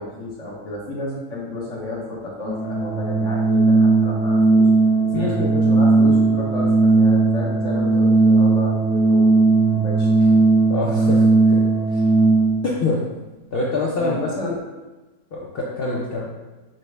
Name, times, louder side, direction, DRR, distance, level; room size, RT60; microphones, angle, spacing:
voice 1, 0.0-4.7 5.0-9.5 9.7-10.5 14.0-14.6, left 2 dB, 60° left, -4 dB, 1.2 m, -31 dB
Organ, 2.4-12.7, right 3 dB, 80° right, 1.2 m, -17 dB
voice 2, 10.7-11.6 11.9-12.0 12.6-13.0 13.5-14.3 15.3-16.3, left 3 dB, 80° left, -4 dB, 0.5 m, -25 dB
5.5 x 2.0 x 3.2 m, 1.2 s
omnidirectional pair, 1.6 m